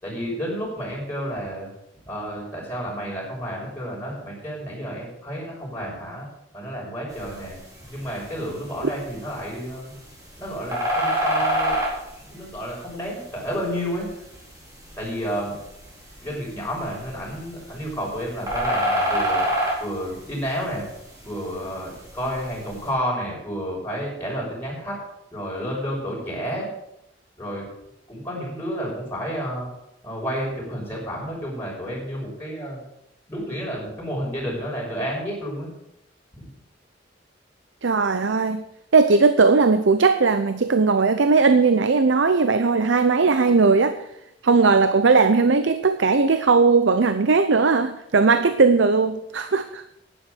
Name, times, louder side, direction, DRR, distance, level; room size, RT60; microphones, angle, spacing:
voice 1, 0.0-1.7 2.1-6.3 6.5-7.6 7.9-9.9 10.4-11.8 12.2-14.1 15.0-15.6 16.2-19.4 19.8-20.9 21.2-25.0 25.3-26.7 27.4-27.7 28.1-29.7 30.0-32.8 33.3-35.7, equal, 10° left, -4 dB, 6.2 m, -30 dB
sound 1, 7.1-22.9, equal, 20° right, 4.2 m, -30 dB
voice 2, 37.8-38.6 38.9-44.1 44.4-49.8, right 4 dB, 85° right, 10 dB, 0.7 m, -18 dB
11.0 x 10.0 x 6.5 m, 0.81 s
head